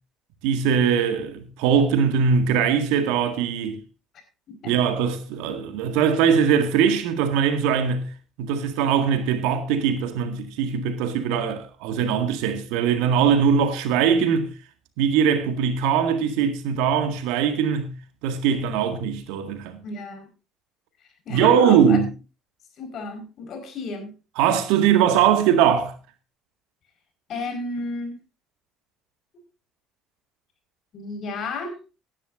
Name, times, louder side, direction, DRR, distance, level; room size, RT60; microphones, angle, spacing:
voice 1, 0.4-3.8 4.7-8.1 8.4-14.5 15.0-17.9 18.2-19.8 21.3-22.1 24.4-25.9, right 7 dB, 70° right, 1.9 m, -21 dB
voice 2, 4.5-4.9 19.8-20.3 21.2-22.0 22.8-24.1 27.3-28.2 30.9-31.8, left 3 dB, 55° left, 4.8 m, -32 dB
17.5 x 11.0 x 2.6 m
hypercardioid pair, 60°, 0 cm